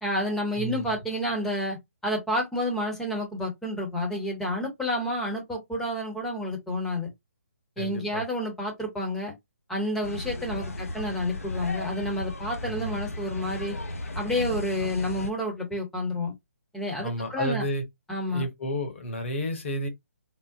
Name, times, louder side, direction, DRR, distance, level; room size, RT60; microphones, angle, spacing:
voice 1, 0.0-1.8 2.0-7.1 7.8-9.3 9.7-13.8 14.1-16.3 16.7-17.6 18.1-18.4, left 1 dB, 5° left, 0.9 m, -29 dB
voice 2, 0.6-1.0 7.8-8.2 10.5-10.7 12.6-13.0 14.8-15.1 17.0-17.8 18.3-19.9, equal, 55° left, 1.3 m, -32 dB
sound 1, 10.0-15.3, left 1 dB, 70° left, 0.8 m, -35 dB
3.8 x 2.0 x 2.5 m
figure-of-eight pair, 140°, 8 cm